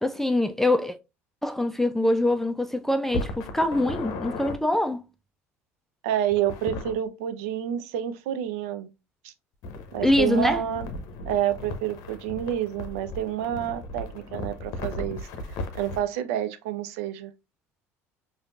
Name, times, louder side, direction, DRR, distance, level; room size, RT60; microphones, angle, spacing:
voice 1, 0.0-1.0 1.4-5.0 10.0-10.6, left 1 dB, 5° left, 0.4 m, -24 dB
sound 1, 3.1-4.6 6.3-6.9 9.6-16.0, left 2 dB, 55° left, 0.7 m, -36 dB
voice 2, 6.0-8.9 9.2-9.3 9.9-10.9 11.2-15.2 15.7-17.3, right 11 dB, 70° right, 0.5 m, -28 dB
5.0 x 2.6 x 2.4 m
figure-of-eight pair, 65°, 8 cm